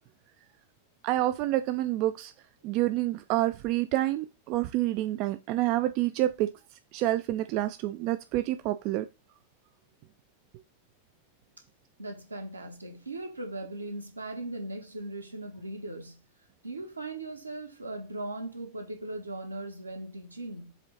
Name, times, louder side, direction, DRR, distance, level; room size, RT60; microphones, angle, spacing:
voice 1, 1.0-2.3 2.6-6.5 6.9-9.1, right 15 dB, 45° right, 0.4 m, -28 dB
voice 2, 12.0-16.2 16.6-20.7, right 2 dB, 80° right, 1.8 m, -38 dB
7.3 x 3.8 x 4.0 m
figure-of-eight pair, 90°, 0 cm